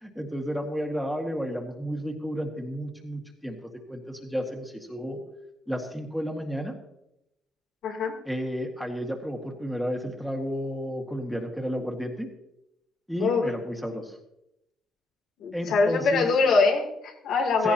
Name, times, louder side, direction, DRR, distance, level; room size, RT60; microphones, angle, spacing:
voice 1, 0.0-5.2 5.7-6.7 8.3-12.3 13.1-14.2 15.5-16.3 17.6-17.7, equal, ahead, 1 dB, 1.9 m, -32 dB
voice 2, 7.8-8.1 13.2-13.5 15.4-17.7, left 4 dB, 65° left, 1 dB, 2.9 m, -23 dB
16.5 x 16.5 x 2.9 m, 0.84 s
cardioid pair, 135°, 0 cm